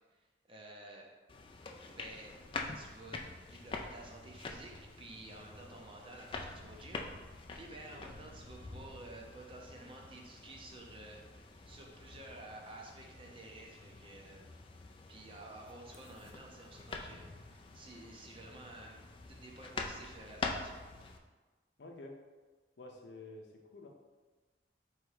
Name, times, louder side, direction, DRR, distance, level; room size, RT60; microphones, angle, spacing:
voice 1, 0.5-1.1 1.9-2.3 2.7-3.2 3.5-14.5 15.1-19.0 19.3-20.9, right 2 dB, 30° right, -1 dB, 0.6 m, -52 dB
sound 1, 1.3-21.2, left 3 dB, 30° left, 0.3 m, -46 dB
voice 2, 21.8-22.2 22.8-23.9, left 2 dB, 80° left, 2 dB, 0.6 m, -50 dB
3.4 x 3.1 x 4.8 m, 1.3 s
head